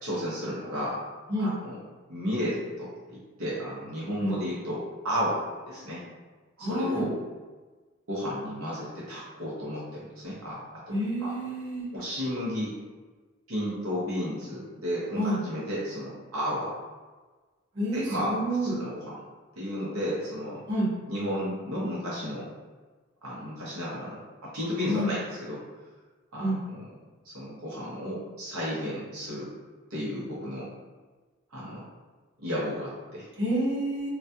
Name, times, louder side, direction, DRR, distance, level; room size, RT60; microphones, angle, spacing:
voice 1, 0.0-1.0 1.4-1.8 2.1-6.1 6.6-7.1 8.1-11.3 11.9-12.7 13.5-16.7 17.9-18.3 18.6-19.1 19.6-20.6 21.1-22.5 23.2-25.6 26.3-26.5 27.2-29.5 29.9-30.7 31.5-31.8 32.4-33.3, equal, 85° right, -7 dB, 0.8 m, -33 dB
voice 2, 6.6-7.0 10.9-11.9 15.1-15.4 17.7-18.7 20.7-20.9 24.8-25.1 26.4-26.6 33.4-34.1, right 1 dB, 50° right, -9 dB, 0.9 m, -28 dB
2.3 x 2.2 x 2.6 m, 1.3 s
head